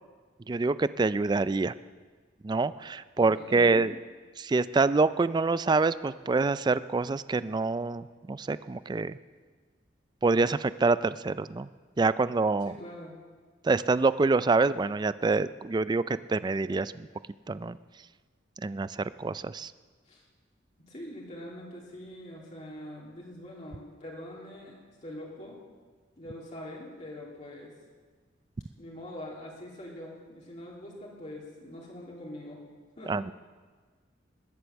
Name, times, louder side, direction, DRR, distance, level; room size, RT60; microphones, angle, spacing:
voice 1, 0.5-1.7 2.4-3.9 4.4-9.2 10.2-11.7 12.0-12.7 13.6-17.1 17.5-17.8 18.6-19.7 33.1-33.3, right 3 dB, 25° right, 15 dB, 0.3 m, -26 dB
voice 2, 3.2-3.8 12.6-13.1 20.1-20.2 20.9-25.6 26.2-27.7 28.8-32.6 33.0-33.2, left 1 dB, 40° left, -4 dB, 2.8 m, -43 dB
20.5 x 8.1 x 7.1 m, 1.5 s
head